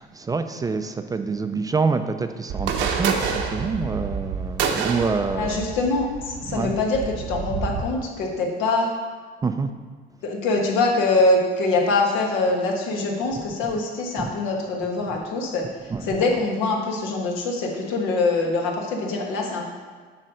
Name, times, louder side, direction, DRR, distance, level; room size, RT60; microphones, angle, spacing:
voice 1, 0.0-5.7 6.5-6.7 9.4-9.7 13.4-13.5 14.2-14.3 15.9-16.1, right 4 dB, 20° right, 8 dB, 0.3 m, -26 dB
sound 1, 2.5-7.8, right 6 dB, 70° right, 0.9 m, -28 dB
voice 2, 5.3-8.9 10.2-15.7 16.0-19.6, left 3 dB, 85° left, 0 dB, 1.4 m, -23 dB
8.6 x 3.3 x 6.3 m, 1.5 s
cardioid pair, 115°, 20 cm